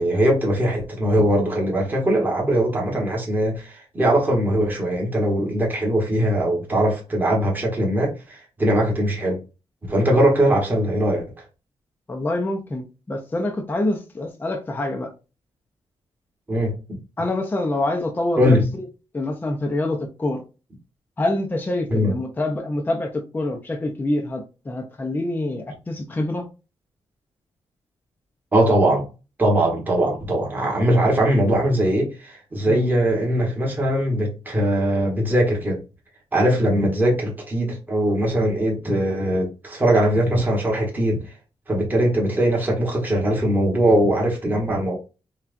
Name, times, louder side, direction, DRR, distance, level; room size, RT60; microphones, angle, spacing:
voice 1, 0.0-9.4 9.9-11.2 16.5-17.0 18.4-18.6 21.9-22.1 28.5-29.1 29.4-35.8 36.3-41.2 41.7-44.9, right 1 dB, 15° right, 1.2 m, -21 dB
voice 2, 12.1-15.1 17.2-18.9 19.1-20.4 21.2-26.5 32.7-32.8, left 1 dB, 15° left, 0.5 m, -26 dB
5.6 x 2.3 x 2.5 m
wide cardioid pair, 175°, 11 cm